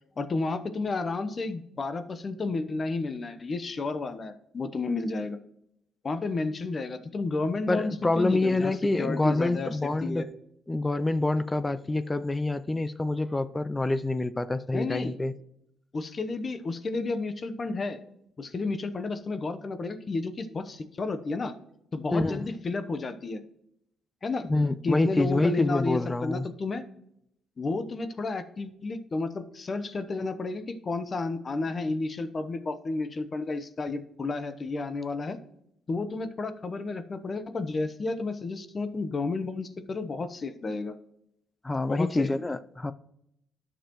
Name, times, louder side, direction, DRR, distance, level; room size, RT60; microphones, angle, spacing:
voice 1, 0.2-5.4 6.0-9.7 10.0-10.3 14.7-15.1 15.9-18.0 18.4-21.5 21.9-23.4 24.2-24.5 24.8-26.8 27.6-35.4 35.9-40.9 41.9-42.3, left 3 dB, 40° left, 0.9 m, -32 dB
voice 2, 7.7-10.2 10.7-15.3 22.1-22.5 24.5-26.5 41.6-42.9, left 2 dB, 20° left, 0.4 m, -26 dB
10.5 x 6.7 x 3.0 m
cardioid pair, 90°, 0 cm